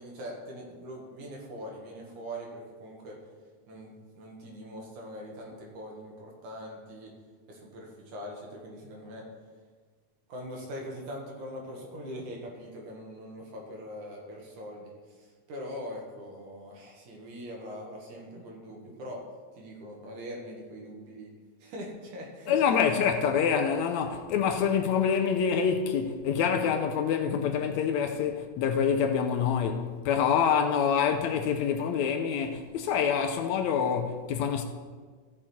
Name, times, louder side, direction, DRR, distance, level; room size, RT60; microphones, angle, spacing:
voice 1, 0.0-3.2 3.7-7.1 7.5-9.2 10.3-14.9 15.2-19.2 19.6-21.3 21.6-22.5, equal, 75° right, 3.3 m, -42 dB
voice 2, 22.5-34.6, left 7 dB, 75° left, 1.9 m, -26 dB
14.5 x 6.3 x 4.4 m
omnidirectional pair, 3.5 m